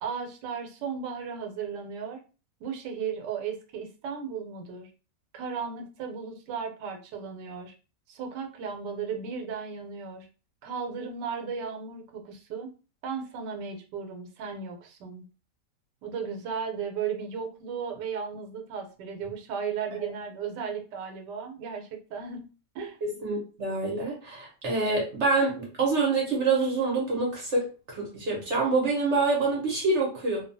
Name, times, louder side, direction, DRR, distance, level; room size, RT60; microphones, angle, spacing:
voice 1, 0.0-2.2 2.6-4.9 5.3-7.7 8.1-10.3 10.6-12.7 13.0-15.2 16.0-22.4 22.7-23.0, right 6 dB, 80° right, 4 dB, 1.2 m, -35 dB
voice 2, 23.0-30.4, right 3 dB, 50° right, -2 dB, 1.0 m, -26 dB
2.7 x 2.3 x 2.6 m, 0.34 s
omnidirectional pair, 1.9 m